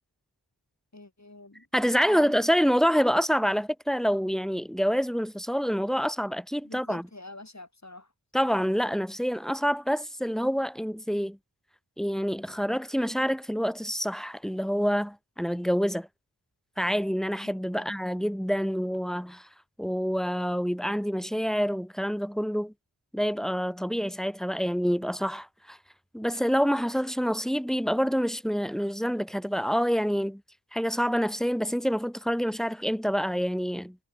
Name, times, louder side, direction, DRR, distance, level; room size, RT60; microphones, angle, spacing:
voice 1, 0.9-1.7 2.1-2.3 6.6-8.1 17.4-17.8, left 2 dB, 40° left, 7.4 m, -46 dB
voice 2, 1.7-7.1 8.3-11.4 12.0-16.1 16.8-19.5 19.8-22.7 23.1-25.8 26.1-30.4 30.7-34.0, equal, ahead, 2.8 m, -27 dB
wide cardioid pair, 40°, 43 cm